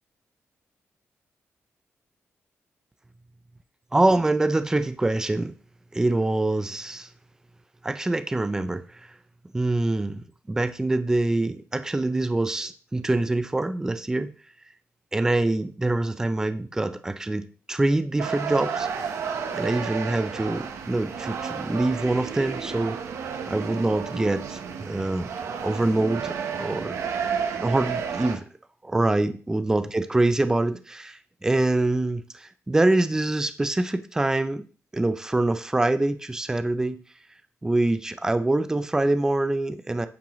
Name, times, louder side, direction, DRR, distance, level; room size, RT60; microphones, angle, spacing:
voice 1, 3.9-5.5 5.9-7.1 7.8-9.1 9.5-10.2 10.5-14.3 15.1-19.2 19.5-23.0 23.5-25.3 25.6-27.0 27.6-28.4 28.8-34.7 34.9-37.0 37.6-40.1, right 2 dB, 10° right, 11 dB, 0.5 m, -25 dB
sound 1, 18.2-28.4, right 6 dB, 80° right, 1.1 m, -32 dB
9.3 x 7.3 x 3.1 m, 0.39 s
wide cardioid pair, 135°, 5 cm